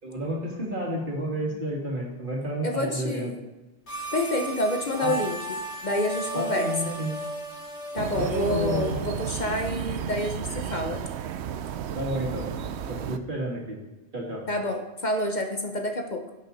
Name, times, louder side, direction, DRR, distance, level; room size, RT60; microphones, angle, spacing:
voice 1, 0.0-3.3 5.0-5.1 6.3-7.1 8.2-9.0 11.9-12.5 12.9-13.8 14.1-14.4, right 1 dB, 50° right, -2 dB, 2.6 m, -31 dB
voice 2, 2.6-3.4 4.1-5.4 5.8-6.9 7.9-11.0 14.5-16.3, left 1 dB, 45° left, 4 dB, 1.1 m, -28 dB
sound 1, 3.9-9.7, right 1 dB, 90° left, 1.9 m, -36 dB
sound 2, 8.0-13.2, right 8 dB, 85° right, 0.9 m, -33 dB
16.5 x 6.5 x 4.1 m, 1.1 s
omnidirectional pair, 1.1 m